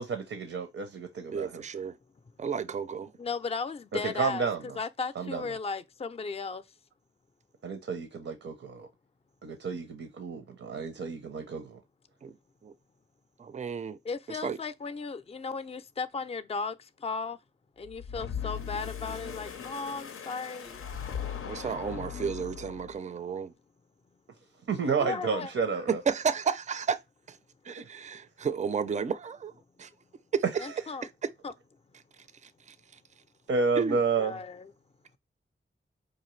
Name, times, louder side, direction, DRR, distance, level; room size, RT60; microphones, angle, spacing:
voice 1, 0.0-1.6 4.0-4.6 5.2-5.4 7.6-8.9 9.4-11.8 24.7-26.0 27.7-27.8 33.5-34.3, right 5 dB, 85° right, 0.6 m, -31 dB
voice 2, 1.3-1.9 2.4-3.1 12.2-12.3 12.6-12.7 13.4-14.0 14.3-14.6 21.4-23.5 25.9-27.0 27.3-27.4 27.6-29.5 29.8-29.9 30.3-30.4 31.0-31.1 32.4-32.8 33.8-34.0, right 6 dB, 35° right, 0.4 m, -32 dB
voice 3, 3.2-6.6 14.0-17.4 17.8-20.9 25.0-25.5 30.6-31.1 31.4-31.5 33.9-34.7, left 4 dB, 30° left, 0.4 m, -36 dB
sound 1, 17.9-23.1, left 8 dB, 90° left, 0.5 m, -39 dB
4.9 x 2.6 x 3.1 m
wide cardioid pair, 70°, 21 cm